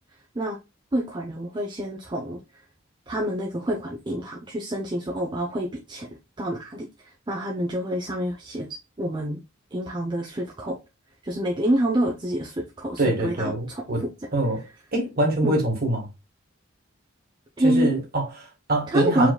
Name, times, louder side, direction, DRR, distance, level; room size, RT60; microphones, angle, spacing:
voice 1, 0.9-2.4 3.1-6.1 6.4-6.9 7.3-8.7 9.0-9.4 9.7-10.8 11.2-13.8 15.4-15.6 17.6-17.9 18.9-19.3, right 1 dB, 20° right, 0.6 m, -27 dB
voice 2, 13.0-14.6 14.9-16.1 17.6-19.3, right 1 dB, 45° right, 1.6 m, -24 dB
4.7 x 3.7 x 2.2 m
head